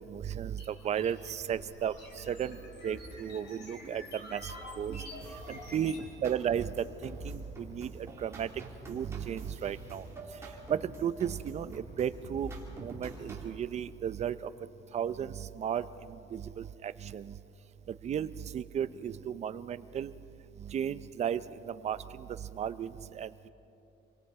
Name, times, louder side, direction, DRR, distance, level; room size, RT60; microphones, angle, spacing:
voice 1, 0.1-2.6 2.8-4.0 4.3-5.0 5.5-6.7 7.0-8.5 8.9-10.0 10.7-12.5 12.8-14.5 14.9-15.8 16.3-17.3 18.0-20.1 20.7-22.0 22.6-22.9 23.1-23.5, right 9 dB, 35° right, 14 dB, 0.5 m, -34 dB
sound 1, 0.6-6.1, left 1 dB, 60° left, 5.4 m, -47 dB
sound 2, 5.2-13.6, right 2 dB, 15° right, 2.9 m, -46 dB
28.0 x 23.5 x 4.8 m, 2.9 s
cardioid pair, 170°, 20 cm